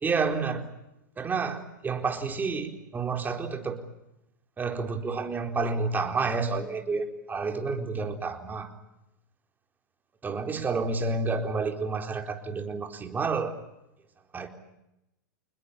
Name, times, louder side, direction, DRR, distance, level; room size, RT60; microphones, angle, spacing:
voice 1, 0.0-0.6 1.2-3.8 4.6-8.7 10.2-13.5 14.3-14.5, right 4 dB, 15° right, 5 dB, 4.2 m, -29 dB
28.5 x 20.5 x 8.6 m, 0.90 s
hypercardioid pair, 110°, 10 cm